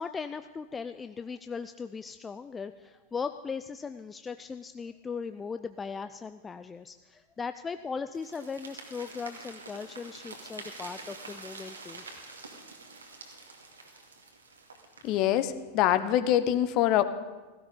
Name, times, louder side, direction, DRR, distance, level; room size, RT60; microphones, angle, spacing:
voice 1, 0.0-12.0, left 5 dB, 15° left, 10 dB, 0.4 m, -38 dB
sound 1, 8.1-15.3, right 3 dB, 75° right, 2.2 m, -47 dB
voice 2, 15.0-17.0, left 12 dB, 40° left, 13 dB, 1.0 m, -24 dB
16.5 x 15.5 x 5.3 m, 1.3 s
figure-of-eight pair, 90°, 0 cm